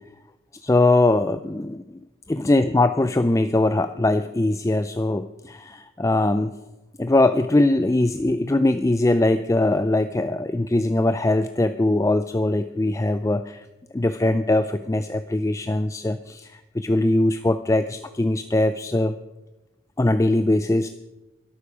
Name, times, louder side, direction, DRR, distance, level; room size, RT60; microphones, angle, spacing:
voice 1, 0.6-1.8 2.3-6.5 7.0-13.7 13.9-19.2 20.0-20.9, left 2 dB, 15° left, 10 dB, 0.3 m, -21 dB
13.0 x 12.0 x 5.0 m, 1.0 s
head